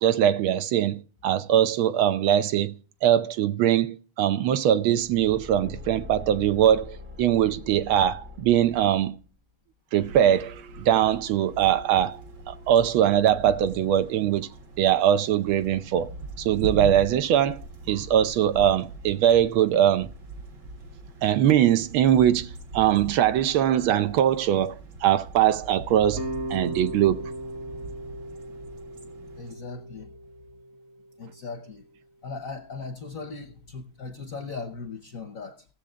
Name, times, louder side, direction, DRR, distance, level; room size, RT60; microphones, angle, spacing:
voice 1, 0.0-2.7 3.0-9.2 9.9-12.2 12.5-14.5 14.8-16.1 16.4-17.6 17.9-20.1 21.2-26.2 26.5-27.3, right 10 dB, 80° right, 1.5 m, -22 dB
Car / Engine, 4.8-9.3, left 4 dB, 15° right, 0.4 m, -43 dB
sound 1, 10.0-29.5, right 2 dB, 55° right, 2.3 m, -41 dB
sound 2, 26.1-31.3, right 1 dB, 40° right, 1.1 m, -37 dB
voice 2, 29.4-30.2 31.2-31.8 32.2-35.7, left 4 dB, 60° left, 0.9 m, -38 dB
17.0 x 7.2 x 3.7 m
omnidirectional pair, 2.3 m